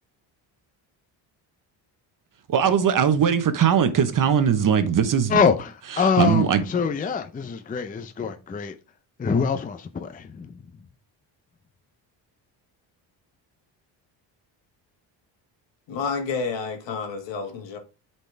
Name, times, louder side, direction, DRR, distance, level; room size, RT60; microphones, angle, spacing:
voice 1, 2.5-5.3 5.9-6.6, right 7 dB, 45° right, 1.0 m, -20 dB
voice 2, 5.3-8.7 9.2-10.5, left 5 dB, 20° left, 0.5 m, -24 dB
voice 3, 15.9-17.8, left 4 dB, 75° left, 1.7 m, -29 dB
8.0 x 4.4 x 3.3 m
cardioid pair, 100°, 44 cm